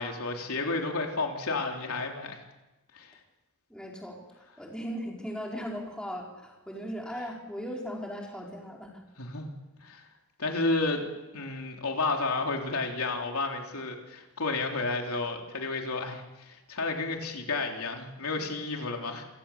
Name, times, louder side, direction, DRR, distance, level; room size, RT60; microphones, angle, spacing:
voice 1, 0.0-2.4 2.9-3.2 9.2-9.5 9.8-10.0 10.4-11.1 11.3-19.2, left 3 dB, 85° left, 2 dB, 3.3 m, -31 dB
voice 2, 3.7-9.0, equal, 5° left, -1 dB, 4.4 m, -38 dB
27.5 x 17.0 x 7.2 m, 1.0 s
head